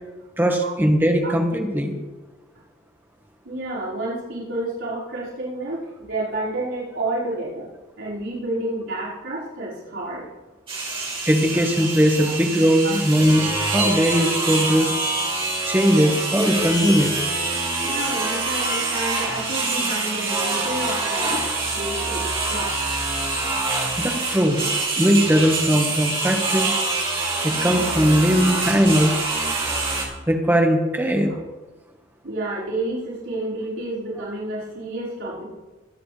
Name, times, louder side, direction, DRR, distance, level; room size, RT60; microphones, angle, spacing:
voice 1, 0.4-1.9 11.3-14.9 15.6-17.1 24.0-26.7 27.4-29.2 30.3-31.3, equal, 10° right, 2 dB, 1.5 m, -19 dB
voice 2, 3.4-7.7 8.0-10.3 12.2-12.3 12.8-13.0 14.2-14.3 17.8-21.4 21.7-22.9 32.2-35.4, right 2 dB, 85° right, -9 dB, 5.3 m, -30 dB
sound 1, 10.7-30.0, right 3 dB, 30° right, 3.3 m, -25 dB
23.5 x 9.1 x 3.4 m, 1.2 s
head